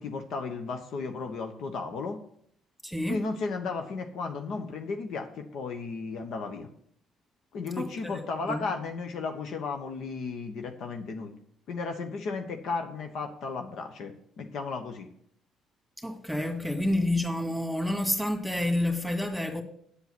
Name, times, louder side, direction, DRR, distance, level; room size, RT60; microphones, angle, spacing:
voice 1, 0.0-2.2 3.1-6.7 7.5-11.3 11.7-15.1, left 4 dB, 60° left, 1.0 m, -34 dB
voice 2, 2.8-3.2 7.8-8.7 16.0-19.6, left 1 dB, ahead, 1.9 m, -29 dB
8.2 x 8.1 x 6.0 m
figure-of-eight pair, 50°, 0 cm